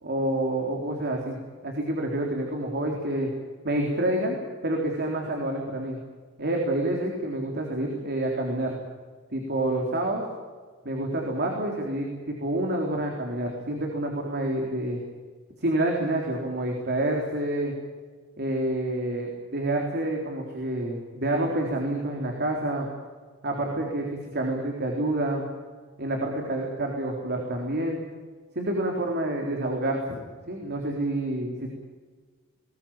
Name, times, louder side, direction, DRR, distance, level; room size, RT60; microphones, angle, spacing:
voice 1, 0.0-1.4 1.6-3.3 3.6-4.4 4.6-6.0 6.4-8.8 9.3-10.2 10.8-15.0 15.6-17.7 18.4-22.9 23.4-25.5 26.0-28.0 28.6-30.2 30.5-31.7, right 1 dB, 50° right, 1 dB, 3.8 m, -28 dB
21.0 x 20.5 x 8.9 m, 1.5 s
head